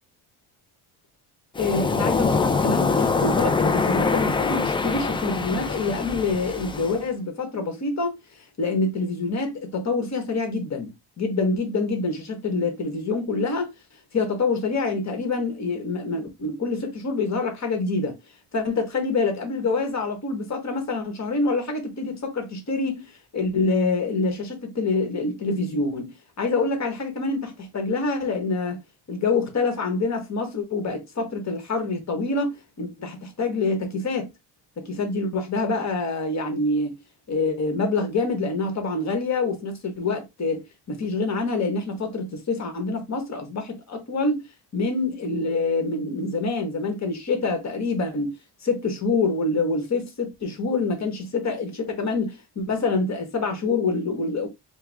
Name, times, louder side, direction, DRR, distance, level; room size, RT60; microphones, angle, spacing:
voice 1, 1.6-8.2 8.6-13.7 14.1-18.2 18.5-26.1 26.4-28.8 29.1-34.3 34.8-36.9 37.3-44.4 44.7-48.3 48.6-54.5, left 3 dB, 40° left, 1.4 m, -26 dB
Waves surf, 1.6-7.0, left 4 dB, 10° left, 0.4 m, -24 dB
4.6 x 2.2 x 3.5 m
cardioid pair, 115°, 43 cm